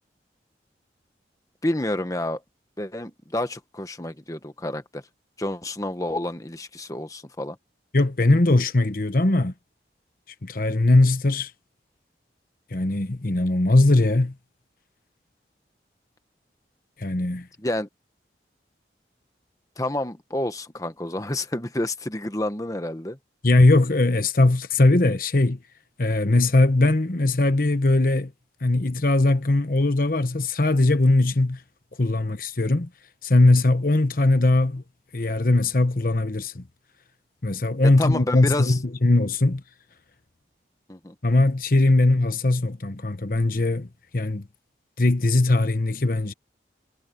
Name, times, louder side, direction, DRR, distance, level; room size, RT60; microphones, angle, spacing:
voice 1, 1.6-2.4 2.8-5.0 5.4-7.6 17.6-17.9 19.8-23.2 38.0-38.8 40.9-41.1, left 1 dB, 20° left, 1.2 m, -29 dB
voice 2, 7.9-9.5 10.4-11.5 12.7-14.3 17.0-17.5 23.4-25.6 26.0-28.3 28.6-31.6 32.0-32.9 33.2-34.8 35.1-36.6 37.4-39.6 41.2-44.5 45.0-46.3, left 2 dB, 50° left, 1.1 m, -20 dB
head